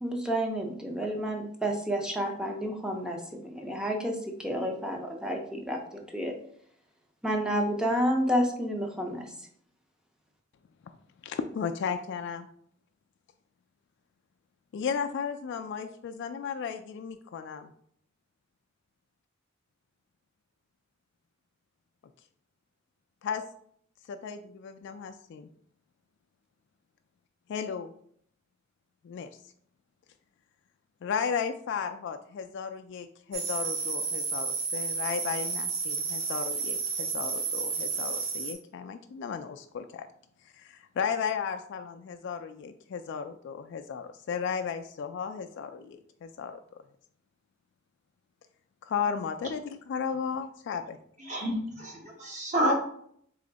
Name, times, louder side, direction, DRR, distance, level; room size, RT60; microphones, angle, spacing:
voice 1, 0.0-6.3 7.2-9.3, equal, 5° right, 2 dB, 0.6 m, -30 dB
voice 2, 11.2-12.5 14.7-17.7 23.2-23.4 24.1-25.5 27.5-27.9 29.0-29.3 31.0-40.1 40.5-46.6 48.8-51.0, left 6 dB, 60° left, 7 dB, 0.3 m, -34 dB
sound 1, 33.3-38.5, right 5 dB, 70° right, 1.4 m, -31 dB
voice 3, 51.3-52.7, equal, 40° right, 0 dB, 1.1 m, -29 dB
3.4 x 3.1 x 3.9 m, 0.65 s
head